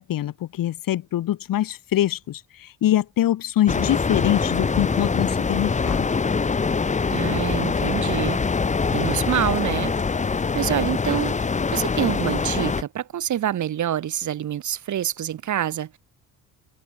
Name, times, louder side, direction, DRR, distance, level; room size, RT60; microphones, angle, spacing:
voice 1, 0.0-6.1, left 13 dB, 70° left, 2.1 m, -24 dB
sound 1, 3.7-12.8, left 4 dB, 20° left, 0.9 m, -24 dB
voice 2, 7.1-8.4 8.9-10.0 10.5-11.4 11.7-16.0, right 11 dB, 55° right, 1.4 m, -26 dB
cardioid pair, 100°, 35 cm